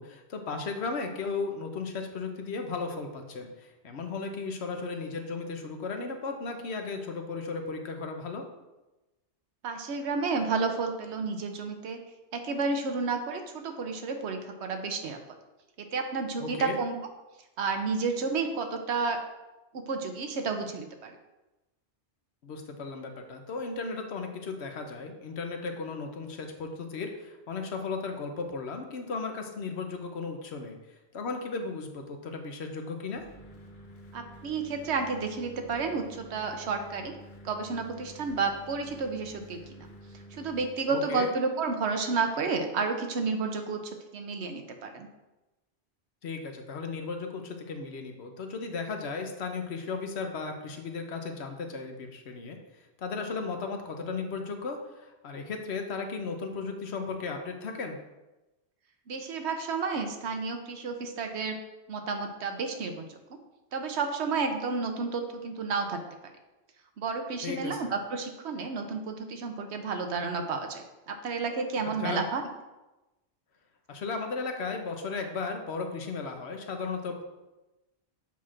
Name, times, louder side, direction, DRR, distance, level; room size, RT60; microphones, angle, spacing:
voice 1, 0.0-8.4 16.4-16.8 22.4-30.8 31.1-33.2 40.9-41.3 46.2-52.6 53.0-58.0 67.4-67.9 72.0-72.2 73.9-77.2, left 4 dB, 70° left, 4 dB, 1.0 m, -35 dB
voice 2, 9.6-12.0 12.3-15.2 15.8-17.0 17.6-19.2 19.7-21.2 34.1-37.1 37.4-39.9 40.3-45.1 59.1-61.6 61.9-63.4 63.7-66.0 67.0-72.4, right 4 dB, 75° right, 5 dB, 1.0 m, -31 dB
sound 1, 33.1-40.6, equal, 50° left, 1.0 m, -49 dB
7.2 x 5.9 x 2.5 m, 1.0 s
omnidirectional pair, 1.2 m